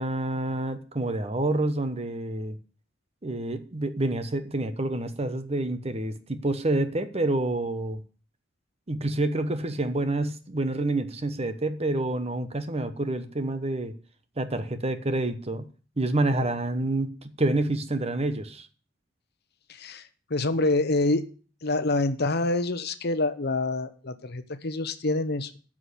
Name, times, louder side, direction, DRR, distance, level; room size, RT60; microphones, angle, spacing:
voice 1, 0.0-2.6 3.2-8.0 8.9-13.9 14.4-15.7 16.0-18.7, right 2 dB, 35° right, 10 dB, 1.0 m, -28 dB
voice 2, 19.7-21.3 21.6-25.6, left 2 dB, 60° left, 12 dB, 1.0 m, -26 dB
9.8 x 6.2 x 8.5 m, 0.39 s
head